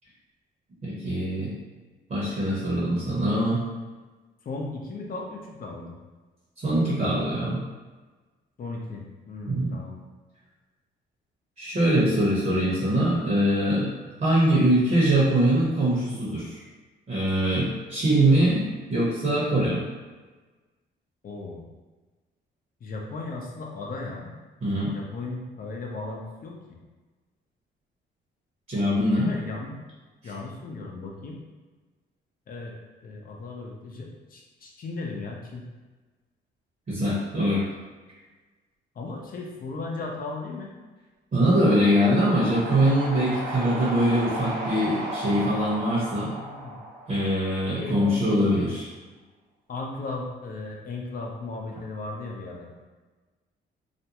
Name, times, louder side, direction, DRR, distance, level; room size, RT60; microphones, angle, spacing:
voice 1, 0.8-1.5 2.1-3.6 6.6-7.6 9.5-9.8 11.6-13.9 14.2-16.6 17.1-19.9 24.6-24.9 28.7-29.3 36.9-37.6 41.3-46.3 47.1-48.9, right 1 dB, 40° right, -7 dB, 0.9 m, -23 dB
voice 2, 4.4-6.0 8.6-9.9 21.2-21.7 22.8-24.3 24.9-26.8 29.1-29.7 30.2-31.4 32.5-32.7 33.0-35.6 39.0-40.7 46.4-46.8 47.8-48.7 49.7-52.7, left 3 dB, 45° left, 0 dB, 0.6 m, -36 dB
sound 1, 41.6-47.7, right 1 dB, 70° right, 0.7 m, -35 dB
2.5 x 2.2 x 2.8 m, 1.3 s
cardioid pair, 90°, 20 cm